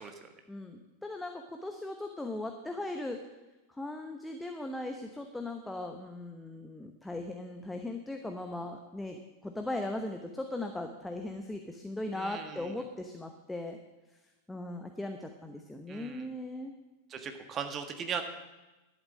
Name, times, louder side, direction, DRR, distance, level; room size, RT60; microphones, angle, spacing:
voice 1, 0.5-3.2 3.7-13.8 14.5-16.7, left 2 dB, 5° left, 4 dB, 1.0 m, -38 dB
voice 2, 12.1-12.7 15.9-16.3 17.1-18.2, right 7 dB, 25° right, 6 dB, 1.6 m, -38 dB
11.5 x 8.5 x 7.4 m, 1.1 s
figure-of-eight pair, 90°, 0 cm